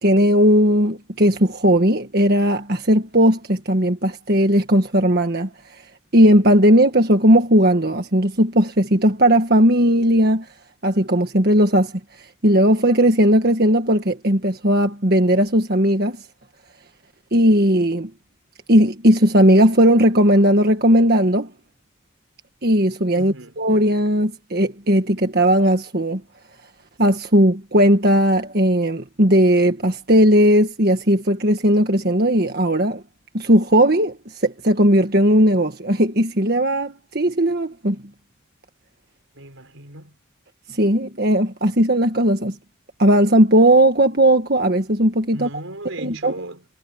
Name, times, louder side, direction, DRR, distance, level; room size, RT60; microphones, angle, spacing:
voice 1, 0.0-5.5 6.1-10.5 10.8-11.9 12.2-16.2 17.3-18.1 18.7-21.5 22.6-26.2 27.0-33.0 33.3-38.0 40.7-42.6 43.0-45.5 46.0-46.3, equal, 50° right, 1.7 m, -17 dB
voice 2, 23.1-23.6 39.3-40.2 45.3-46.7, right 1 dB, 80° right, 4.9 m, -36 dB
head